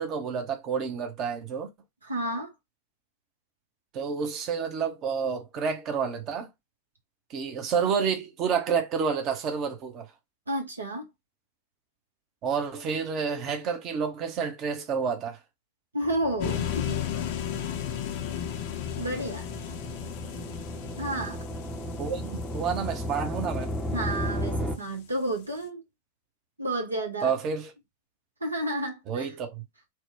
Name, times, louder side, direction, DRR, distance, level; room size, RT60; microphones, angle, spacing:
voice 1, 0.0-1.7 3.9-6.5 7.3-10.1 12.4-15.4 22.0-23.7 27.2-27.7 29.1-29.6, right 6 dB, 35° right, 0.8 m, -29 dB
voice 2, 2.0-2.5 10.5-11.1 15.9-17.0 19.0-19.5 21.0-21.4 23.9-25.8 26.6-27.3 28.4-29.3, right 1 dB, 80° right, 0.8 m, -31 dB
sound 1, 16.0-24.8, equal, 5° left, 0.6 m, -35 dB
sound 2, 16.4-24.5, left 10 dB, 45° left, 0.5 m, -35 dB
2.9 x 2.1 x 3.5 m
figure-of-eight pair, 90°, 0 cm